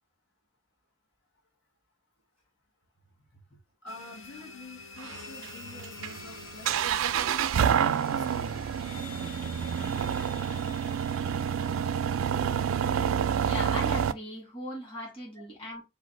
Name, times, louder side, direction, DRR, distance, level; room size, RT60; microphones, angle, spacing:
voice 1, 3.8-8.8 15.3-15.5, left 2 dB, 60° left, 1.6 m, -49 dB
sound 1, 3.9-14.1, left 3 dB, 85° left, 0.7 m, -47 dB
sound 2, 5.0-14.1, right 8 dB, 90° right, 0.3 m, -28 dB
voice 2, 13.4-15.8, left 1 dB, 30° left, 1.8 m, -38 dB
4.7 x 2.4 x 3.2 m
head